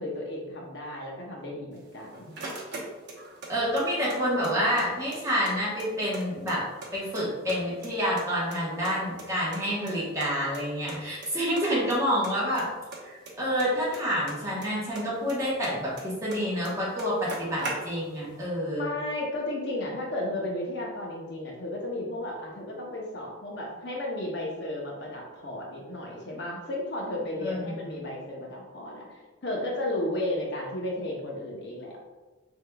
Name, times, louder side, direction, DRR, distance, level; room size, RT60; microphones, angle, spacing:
voice 1, 0.0-2.3 18.7-32.0, left 1 dB, 55° left, -2 dB, 0.7 m, -34 dB
sound 1, 1.8-3.5 3.8-4.9 5.1-5.2 5.5-6.9 7.1-7.9 8.2-9.6 9.9-10.0 10.2-10.3 10.5-10.6 10.9-11.3 11.6-12.0 12.2-14.7 14.9-16.4 16.6-16.7 17.0-18.2, right 2 dB, 55° right, 0.8 m, -39 dB
voice 2, 3.5-6.6 6.9-12.7 13.0-18.9 27.4-28.0, equal, 15° right, -6 dB, 1.0 m, -28 dB
4.5 x 3.5 x 2.2 m, 1.2 s
head